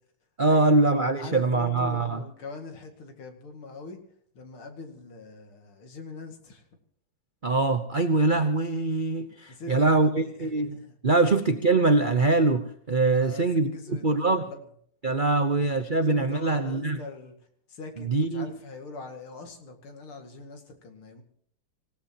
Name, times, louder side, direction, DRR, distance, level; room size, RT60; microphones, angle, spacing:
voice 1, 0.4-2.2 7.4-10.8 11.0-13.7 14.0-14.4 15.0-17.0 18.0-18.6, right 3 dB, 60° right, 8 dB, 0.5 m, -23 dB
voice 2, 1.2-4.0 4.3-6.7 9.5-11.0 13.2-14.6 15.4-15.6 16.0-17.4 17.7-21.2, left 3 dB, 75° left, 4 dB, 3.0 m, -42 dB
26.0 x 17.0 x 3.0 m, 0.65 s
omnidirectional pair, 2.4 m